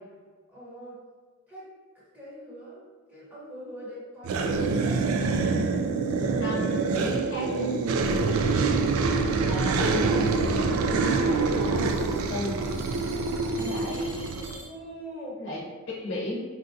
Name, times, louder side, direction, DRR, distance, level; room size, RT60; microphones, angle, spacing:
voice 1, 0.5-1.0 1.5-1.7 2.1-5.6 14.4-15.4, equal, 10° right, -9 dB, 1.0 m, -44 dB
sound 1, 4.2-14.6, right 4 dB, 80° right, 0.3 m, -25 dB
voice 2, 6.4-7.7 9.5-12.6 13.5-14.4 15.4-15.6 16.0-16.4, left 1 dB, 55° left, -5 dB, 0.8 m, -35 dB
sound 2, 9.1-14.7, right 2 dB, 45° right, 1.1 m, -47 dB
3.9 x 2.4 x 2.6 m, 1.5 s
head